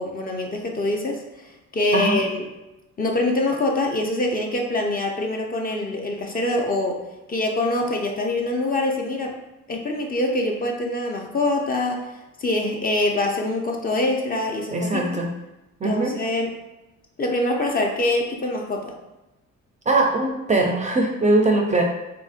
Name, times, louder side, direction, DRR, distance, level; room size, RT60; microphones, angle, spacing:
voice 1, 0.0-2.4 3.0-7.0 7.3-9.4 9.7-12.1 12.4-15.2 15.8-16.5 17.2-18.9, left 2 dB, 30° left, 1 dB, 0.5 m, -24 dB
voice 2, 14.7-15.3 15.8-16.1 19.9-21.8, right 2 dB, 25° right, 1 dB, 0.4 m, -21 dB
3.6 x 2.5 x 2.4 m, 1.0 s
cardioid pair, 90°, 30 cm